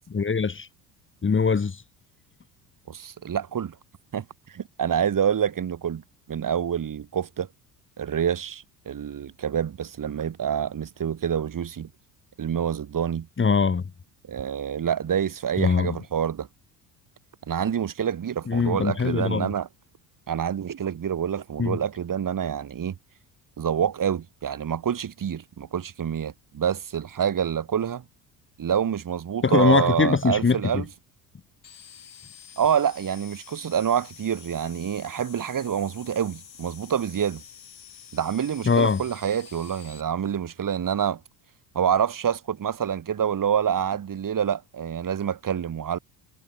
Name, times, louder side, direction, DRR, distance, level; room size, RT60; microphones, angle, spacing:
voice 1, 0.1-0.7 1.2-1.8 13.4-13.8 15.6-16.0 18.5-19.5 21.6-21.8 29.4-30.8 38.6-39.0, left 5 dB, 25° left, 3.0 m, -22 dB
voice 2, 2.9-3.8 4.1-6.0 6.3-7.5 8.0-11.9 12.4-13.3 14.3-16.5 17.5-19.7 20.3-23.0 23.6-28.0 28.6-30.9 32.6-37.4 38.1-41.2 41.7-46.0, right 8 dB, 40° right, 7.2 m, -27 dB
sound 1, 31.6-40.0, left 8 dB, 85° left, 7.4 m, -48 dB
figure-of-eight pair, 60°, 50 cm